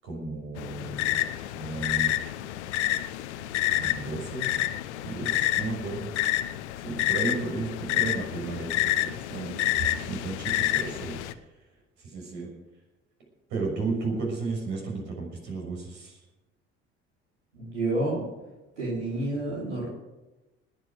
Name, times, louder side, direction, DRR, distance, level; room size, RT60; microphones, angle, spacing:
voice 1, 0.0-1.2 1.5-2.2 3.8-4.5 5.0-6.1 6.8-11.2 12.0-12.5 13.5-16.2, right 3 dB, 70° right, 0 dB, 6.6 m, -33 dB
sound 1, 0.6-11.3, left 14 dB, 75° left, 0.9 m, -29 dB
voice 2, 17.5-18.3 18.8-19.9, right 2 dB, 85° right, -7 dB, 4.6 m, -29 dB
20.0 x 8.0 x 8.2 m, 1.1 s
hypercardioid pair, 60°, 34 cm